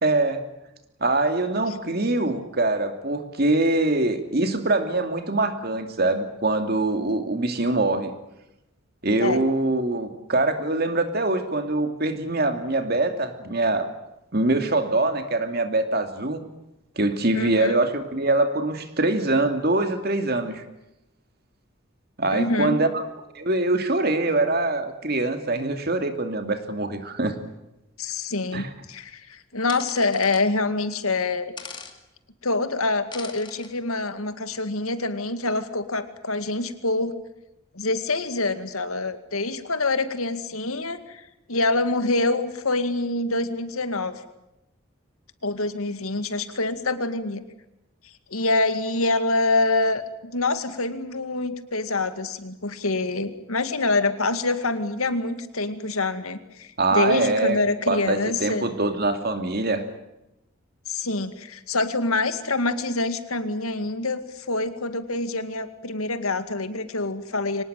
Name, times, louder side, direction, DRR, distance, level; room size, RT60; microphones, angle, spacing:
voice 1, 0.0-0.4 1.0-8.1 9.0-13.9 14.3-16.4 17.0-20.6 22.2-23.0 23.3-27.4 28.5-28.7 56.8-57.6 57.9-59.8, right 2 dB, 45° right, 7 dB, 2.6 m, -23 dB
voice 2, 17.3-17.8 22.3-22.8 28.0-31.5 32.4-37.1 37.7-44.2 45.4-47.4 48.3-58.6 60.9-67.6, left 2 dB, 85° left, 10 dB, 2.1 m, -26 dB
sound 1, 29.7-30.4 31.6-31.9 33.1-33.7, left 5 dB, 20° left, 2.4 m, -40 dB
24.5 x 19.0 x 9.1 m, 0.90 s
head